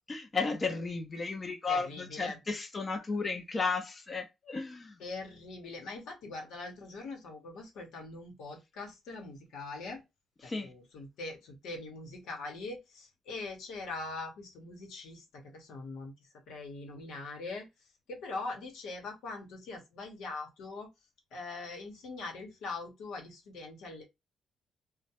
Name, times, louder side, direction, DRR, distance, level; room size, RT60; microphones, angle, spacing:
voice 1, 0.1-5.0 10.4-10.7, left 4 dB, 30° left, 0.5 m, -34 dB
voice 2, 1.7-2.4 5.0-10.0 10.4-17.7 18.1-20.9 21.3-24.0, left 3 dB, 85° left, 0.9 m, -42 dB
2.2 x 2.1 x 2.7 m
cardioid pair, 90°, 0 cm